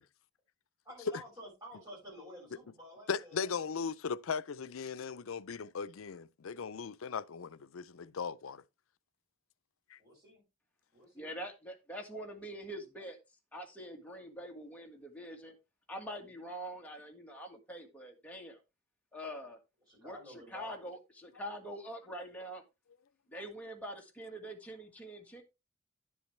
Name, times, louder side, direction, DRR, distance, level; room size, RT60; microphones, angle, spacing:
voice 1, 0.9-3.7 10.0-10.4 10.9-11.3 14.1-14.2 16.2-16.3 19.9-20.8, equal, 20° right, 6.2 m, -51 dB
voice 2, 3.1-8.6 9.9-10.0, left 6 dB, 90° left, 0.5 m, -38 dB
voice 3, 11.1-13.2 13.5-15.5 15.9-18.6 19.1-19.6 20.0-22.6 23.3-25.4, equal, 5° left, 1.7 m, -44 dB
10.5 x 7.1 x 3.2 m
head